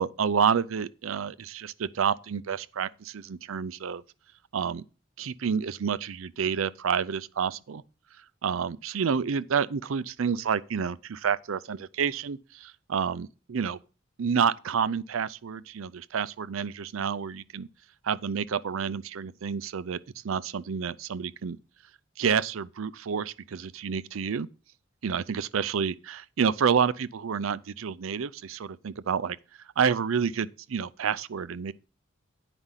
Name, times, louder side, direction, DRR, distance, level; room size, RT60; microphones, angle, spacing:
voice 1, 0.0-4.0 4.5-4.8 5.2-7.8 8.4-13.8 14.2-17.7 18.0-20.0 20.2-21.6 22.2-24.5 25.0-29.4 29.8-31.7, right 6 dB, 80° right, 0.5 m, -29 dB
9.7 x 5.0 x 5.7 m
head